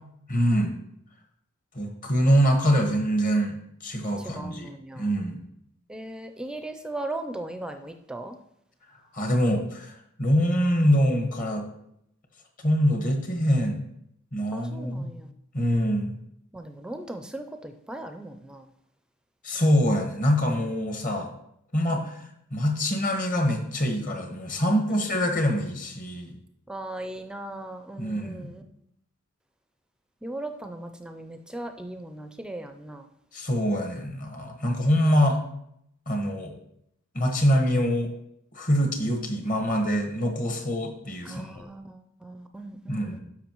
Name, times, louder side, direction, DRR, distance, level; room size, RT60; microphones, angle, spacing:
voice 1, 0.3-0.7 1.7-3.6 3.8-4.7 5.0-5.4 9.1-11.7 12.6-13.8 14.3-15.1 15.5-16.1 19.4-21.3 21.7-22.2 22.5-26.3 28.0-28.5 33.3-35.4 36.1-36.5 37.1-38.1 38.5-41.7 42.9-43.2, equal, 40° left, 3 dB, 1.3 m, -24 dB
voice 2, 4.2-5.1 5.9-8.4 14.5-15.3 16.5-18.6 21.9-22.1 24.9-25.1 26.7-28.6 30.2-33.1 41.2-43.2, right 1 dB, 5° right, 6 dB, 0.4 m, -38 dB
12.5 x 5.5 x 3.0 m, 0.75 s
head